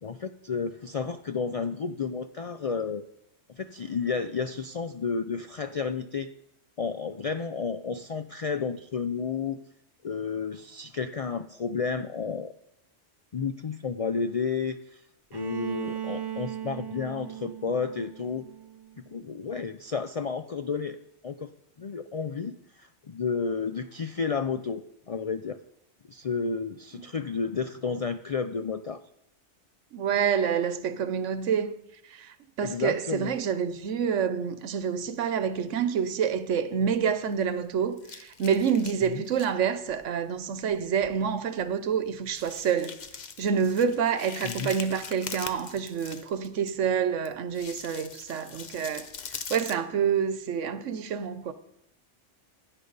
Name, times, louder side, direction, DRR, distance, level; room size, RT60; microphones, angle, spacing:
voice 1, 0.0-3.0 3.5-6.3 6.8-9.6 10.0-12.5 13.3-15.0 15.3-18.5 19.1-21.0 21.2-21.5 21.8-25.6 26.1-29.0 32.6-33.3 39.1-39.2 44.4-44.7, left 5 dB, 65° left, 0.3 m, -31 dB
Bowed string instrument, 15.3-19.2, right 10 dB, 35° right, 0.4 m, -38 dB
voice 2, 29.9-31.7 32.1-43.0 43.4-49.1 49.5-51.5, right 7 dB, 85° right, 1.1 m, -27 dB
sound 1, 36.9-37.6 38.0-39.5 39.9-40.1 40.7-40.8 41.0-41.2 41.6-41.7 42.3-46.7 47.2-49.7, left 6 dB, 45° left, 0.8 m, -42 dB
16.0 x 9.8 x 4.0 m
omnidirectional pair, 1.2 m